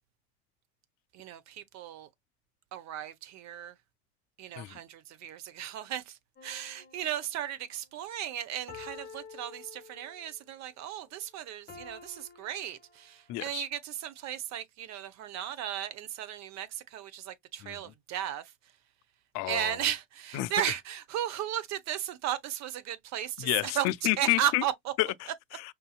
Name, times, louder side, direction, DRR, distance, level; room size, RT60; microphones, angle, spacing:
voice 1, 1.1-2.1 2.7-3.7 4.4-18.5 19.5-23.9 24.2-24.9, right 11 dB, 50° right, 0.8 m, -35 dB
sound 1, 6.4-7.7 8.7-10.4 11.7-13.4 14.0-14.2, left 5 dB, 25° left, 1.0 m, -50 dB
voice 2, 13.3-13.6 17.6-17.8 19.3-19.8 20.3-20.5 23.4-24.6 25.0-25.7, left 18 dB, 50° left, 0.4 m, -30 dB
5.3 x 2.6 x 2.3 m
hypercardioid pair, 70°, 37 cm